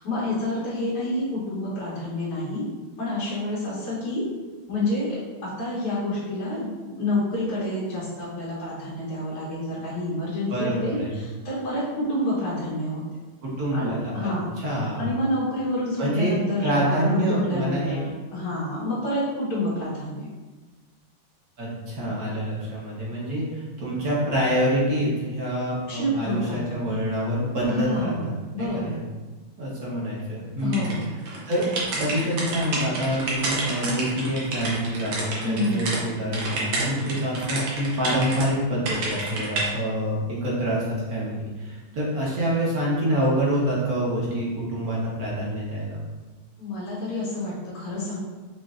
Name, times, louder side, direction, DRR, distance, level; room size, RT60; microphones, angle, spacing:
voice 1, 0.0-2.6 3.0-4.3 4.7-6.7 7.0-13.0 13.7-14.5 15.0-20.3 25.9-26.8 27.7-29.0 30.6-31.1 35.4-35.9 46.6-48.2, left 1 dB, 90° left, -11 dB, 2.4 m, -28 dB
voice 2, 10.5-11.1 13.4-14.3 14.6-15.0 16.0-16.4 16.6-18.0 21.6-28.3 28.6-28.9 29.6-30.9 31.5-31.6 32.0-46.0, right 1 dB, 45° right, -6 dB, 1.5 m, -26 dB
sound 1, 30.7-36.0 36.3-38.5 38.9-39.7, right 2 dB, 65° right, 1.6 m, -29 dB
6.2 x 3.2 x 2.5 m, 1.3 s
omnidirectional pair, 2.4 m